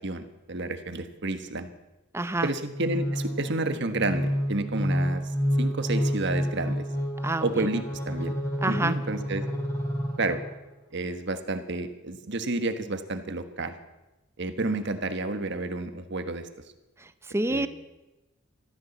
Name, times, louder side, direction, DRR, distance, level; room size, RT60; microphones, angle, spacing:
voice 1, 0.0-1.7 2.4-5.2 5.6-6.8 7.4-8.3 8.7-9.4 10.2-10.4 10.9-13.8 14.4-16.5 17.5-17.7, right 2 dB, 55° right, 9 dB, 1.4 m, -30 dB
voice 2, 2.1-2.5 7.2-7.7 8.6-9.0 17.0-17.7, right 2 dB, 10° right, 13 dB, 0.7 m, -28 dB
sound 1, 2.7-10.7, equal, 15° left, 3.0 m, -29 dB
14.0 x 14.0 x 7.2 m, 1.0 s
head